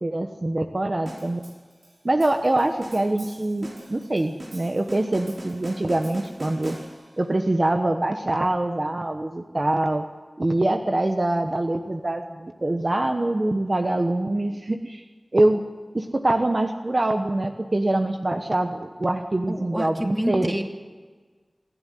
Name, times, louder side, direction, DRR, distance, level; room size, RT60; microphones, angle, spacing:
voice 1, 0.0-1.4 2.0-6.8 7.2-10.0 10.4-15.0 15.3-15.6 15.9-20.5, right 1 dB, 45° right, 5 dB, 1.1 m, -24 dB
sound 1, 1.1-7.3, right 1 dB, 80° right, 5.6 m, -42 dB
voice 2, 19.5-20.6, equal, 10° right, 2 dB, 2.8 m, -28 dB
28.0 x 11.0 x 9.3 m, 1.4 s
wide cardioid pair, 60°, 0 cm